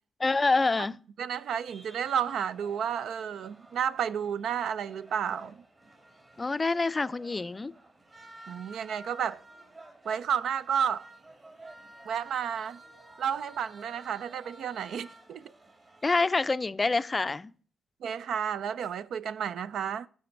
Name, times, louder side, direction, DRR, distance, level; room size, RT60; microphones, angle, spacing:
voice 1, 0.2-1.0 6.4-7.7 16.0-17.5, left 3 dB, 35° left, 0.4 m, -26 dB
voice 2, 1.2-5.6 8.5-9.4 10.1-11.1 12.1-12.8 13.2-15.5 18.0-20.1, right 8 dB, 75° right, 0.3 m, -31 dB
sound 1, 1.6-16.3, right 2 dB, 45° right, 3.2 m, -52 dB
11.5 x 5.2 x 4.5 m
supercardioid pair, 45°, 0 cm